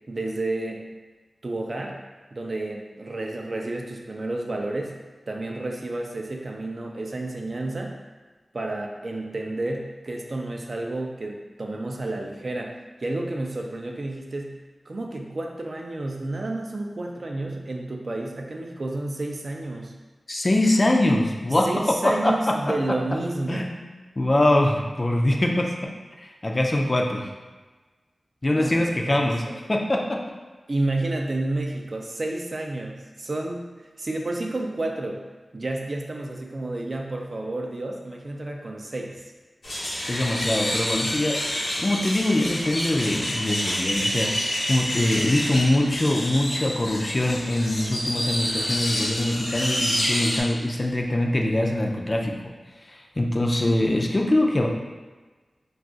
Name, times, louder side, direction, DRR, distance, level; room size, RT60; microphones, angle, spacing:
voice 1, 0.1-0.9 1.4-2.0 2.3-5.0 5.3-8.0 8.5-14.6 14.9-19.9 21.6-23.7 28.5-29.6 30.7-33.7 34.0-35.2 35.5-39.2, right 2 dB, 50° right, 1 dB, 0.4 m, -30 dB
voice 2, 20.3-23.0 23.5-23.7 24.2-25.9 26.2-27.3 28.4-29.4 29.7-30.2 40.1-52.4 52.9-54.7, left 1 dB, 35° left, 1 dB, 0.3 m, -23 dB
sound 1, 39.6-50.4, equal, 85° left, 0.8 m, -28 dB
2.4 x 2.3 x 3.8 m, 1.3 s
wide cardioid pair, 75°, 0 cm